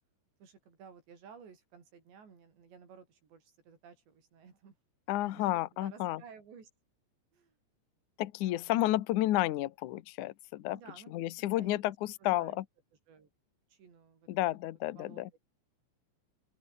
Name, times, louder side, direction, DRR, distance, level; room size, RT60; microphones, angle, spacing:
voice 1, 0.4-4.8 5.2-6.7 7.3-7.6 8.4-9.0 10.7-11.9 12.2-12.6 13.1-13.3 13.7-14.3 15.0-15.4, right 6 dB, 70° right, 7.6 m, -55 dB
voice 2, 5.1-6.2 8.2-10.8 11.1-12.6 14.3-15.3, left 15 dB, 85° left, 1.7 m, -31 dB
open air
omnidirectional pair, 5.2 m